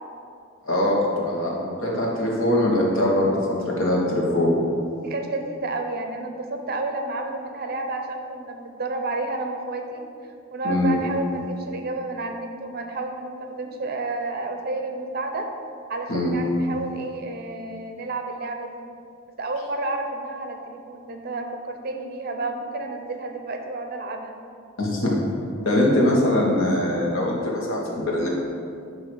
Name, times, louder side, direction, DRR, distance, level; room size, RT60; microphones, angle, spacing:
voice 1, 0.6-4.6 10.6-11.0 16.1-16.4 24.8-25.2 25.6-28.3, left 1 dB, 80° left, -3 dB, 1.6 m, -22 dB
voice 2, 5.0-10.0 10.5-15.5 15.9-18.8 19.4-24.4, right 2 dB, 50° right, 4 dB, 0.7 m, -31 dB
9.2 x 3.2 x 6.3 m, 2.4 s
head